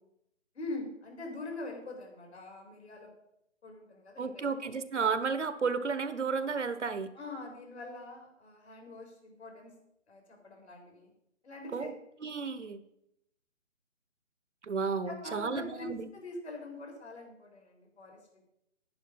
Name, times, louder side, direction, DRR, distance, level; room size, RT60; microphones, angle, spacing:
voice 1, 0.6-3.1 3.6-4.5 7.1-9.7 10.1-11.1 11.4-11.9 15.1-18.2, left 2 dB, 60° left, 1 dB, 5.1 m, -43 dB
voice 2, 4.2-7.1 11.7-11.9 12.2-12.8 14.6-16.1, right 5 dB, 65° right, 12 dB, 1.3 m, -32 dB
10.5 x 10.0 x 5.5 m, 0.79 s
hypercardioid pair, 170°, 38 cm